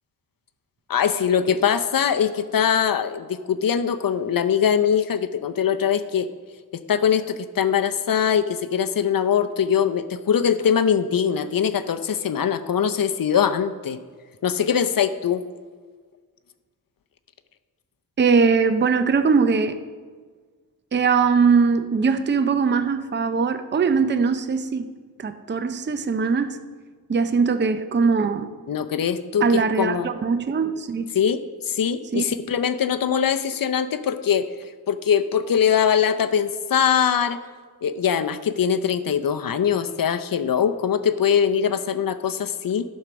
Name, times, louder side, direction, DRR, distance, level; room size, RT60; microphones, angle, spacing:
voice 1, 0.9-6.3 6.9-14.0 14.4-15.4 28.7-30.1 31.1-34.4 34.9-37.4 37.8-42.8, left 8 dB, 60° left, 10 dB, 0.6 m, -22 dB
voice 2, 18.2-19.8 20.9-24.9 25.2-26.6 27.1-28.5 29.4-31.1 32.1-32.2, right 5 dB, 30° right, 10 dB, 0.5 m, -21 dB
11.0 x 4.4 x 6.1 m, 1.5 s
wide cardioid pair, 85°, 39 cm